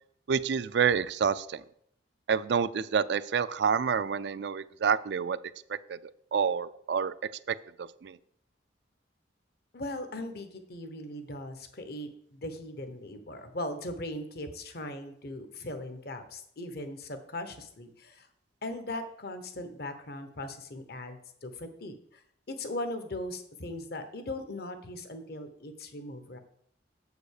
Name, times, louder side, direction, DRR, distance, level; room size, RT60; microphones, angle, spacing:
voice 1, 0.3-1.6 2.3-5.4 5.7-6.0 6.3-7.1 7.5-8.2, right 6 dB, 65° right, 17 dB, 0.4 m, -28 dB
voice 2, 9.7-18.3 18.6-21.9 22.5-26.4, left 1 dB, 55° left, 9 dB, 1.0 m, -39 dB
7.3 x 5.2 x 6.5 m, 0.68 s
head